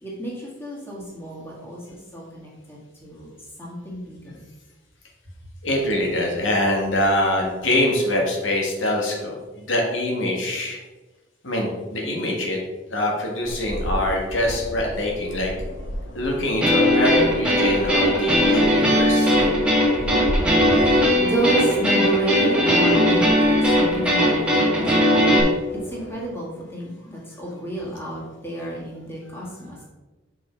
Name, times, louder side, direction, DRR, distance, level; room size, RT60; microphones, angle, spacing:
voice 1, 0.0-3.3 3.6-4.4 20.0-29.8, right 1 dB, 10° left, -4 dB, 1.8 m, -31 dB
voice 2, 5.6-10.8 11.4-12.6 12.9-15.5 16.1-19.3, left 1 dB, 80° left, -1 dB, 1.8 m, -24 dB
sound 1, 13.4-26.3, equal, 65° left, 1.1 m, -35 dB
sound 2, 16.6-25.4, equal, 5° right, 1.7 m, -19 dB
6.0 x 5.4 x 4.5 m, 1.2 s
head